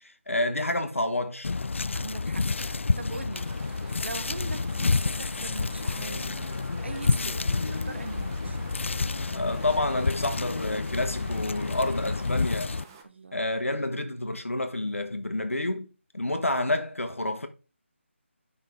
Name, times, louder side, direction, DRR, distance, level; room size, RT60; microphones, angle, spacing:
voice 1, 0.0-1.5 9.3-12.8 13.3-15.9 16.1-17.5, left 2 dB, 85° left, 1.3 m, -29 dB
sound 1, 1.4-12.8, left 4 dB, 65° left, 0.3 m, -29 dB
voice 2, 1.9-6.5 6.8-8.6 13.0-13.5, right 3 dB, 60° right, 1.1 m, -41 dB
sound 2, 3.3-13.0, right 5 dB, 15° right, 0.8 m, -49 dB
sound 3, 5.9-12.4, left 1 dB, 30° left, 2.1 m, -41 dB
9.2 x 5.6 x 3.4 m
figure-of-eight pair, 160°, 7 cm